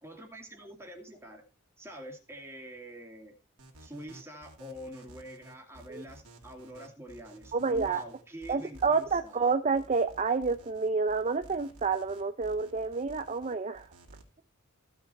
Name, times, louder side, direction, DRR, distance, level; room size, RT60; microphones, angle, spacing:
voice 1, 0.0-1.4 1.8-3.4 3.8-9.4, equal, 10° right, 1 dB, 2.4 m, -45 dB
sound 1, 3.6-14.2, right 1 dB, 70° right, 2.7 m, -53 dB
voice 2, 7.5-8.0 8.5-13.9, right 4 dB, 30° right, 8 dB, 0.6 m, -29 dB
15.0 x 5.8 x 4.2 m, 0.35 s
head